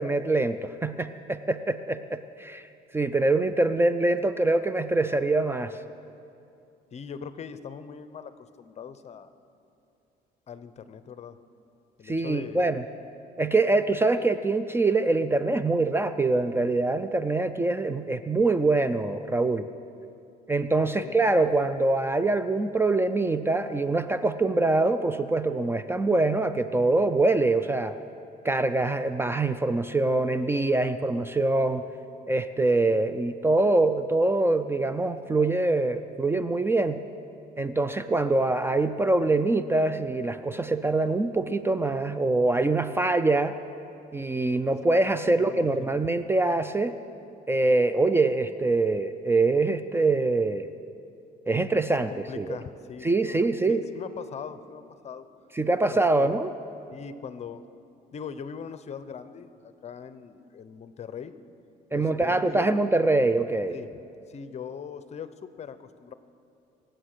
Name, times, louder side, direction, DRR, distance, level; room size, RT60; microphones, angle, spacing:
voice 1, 0.0-2.6 2.9-5.8 12.1-12.8 13.4-19.7 20.5-27.9 28.4-31.8 32.3-37.0 37.6-43.6 44.1-46.9 47.5-50.7 51.5-52.6 53.0-53.8 55.6-56.5 61.9-63.7, right 2 dB, 15° right, 11 dB, 0.4 m, -24 dB
voice 2, 6.9-9.3 10.5-11.4 12.0-12.7 20.9-21.1 45.3-46.0 52.1-55.3 55.9-56.3 56.9-57.6 58.1-61.4 61.9-62.7 63.7-64.0 64.3-66.1, left 7 dB, 40° left, 12 dB, 0.8 m, -41 dB
23.5 x 7.9 x 6.6 m, 2.6 s
cardioid pair, 110°, 17 cm